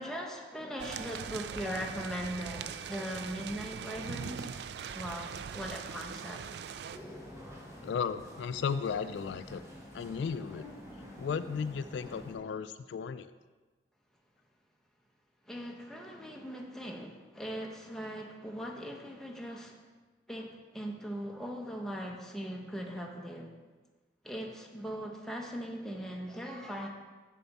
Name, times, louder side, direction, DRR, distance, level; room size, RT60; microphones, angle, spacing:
voice 1, 0.0-4.6 4.9-6.4 15.5-19.8 20.3-23.5 24.2-26.9, equal, 5° left, 0 dB, 0.8 m, -40 dB
sound 1, 0.8-7.0, right 7 dB, 65° right, 0.3 m, -41 dB
sound 2, 6.9-12.3, equal, 15° right, 1.3 m, -48 dB
voice 2, 7.8-9.6 9.9-10.7 11.2-13.3, left 6 dB, 80° left, 12 dB, 0.3 m, -35 dB
7.0 x 7.0 x 4.1 m, 1.3 s
head